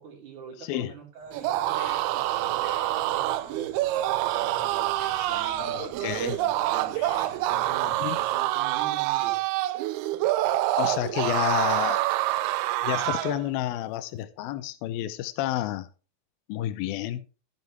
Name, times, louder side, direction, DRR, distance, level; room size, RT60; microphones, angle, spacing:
voice 1, 0.0-7.2 7.5-9.4, right 6 dB, 55° right, 3.6 m, -44 dB
sound 1, 1.2-8.4, left 4 dB, 50° left, 2.3 m, -49 dB
sound 2, 1.3-13.4, right 15 dB, 85° right, 2.6 m, -26 dB
voice 2, 5.6-6.4 8.0-8.2 10.7-12.0 12.8-15.9 16.5-17.2, left 13 dB, 80° left, 2.4 m, -30 dB
14.5 x 7.3 x 3.3 m
omnidirectional pair, 4.4 m